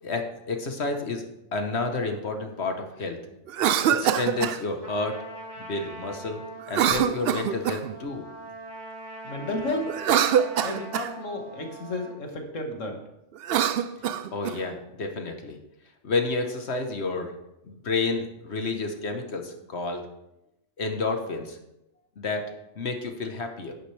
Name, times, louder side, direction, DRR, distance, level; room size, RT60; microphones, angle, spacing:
voice 1, 0.0-1.2 1.5-3.2 3.9-5.2 5.6-6.4 6.7-8.3 14.3-15.6 16.0-17.3 17.6-20.1 20.8-21.6 22.2-23.7, left 3 dB, 60° left, 5 dB, 1.4 m, -30 dB
Cough, 3.5-4.6 6.7-7.9 9.9-11.1 13.4-14.6, right 9 dB, 65° right, 0.7 m, -24 dB
Trumpet, 4.8-12.2, right 2 dB, 20° right, 2.2 m, -42 dB
voice 2, 9.2-9.9 10.6-12.9, left 2 dB, 85° left, 3 dB, 1.9 m, -32 dB
11.0 x 9.9 x 3.3 m, 0.87 s
omnidirectional pair, 1.3 m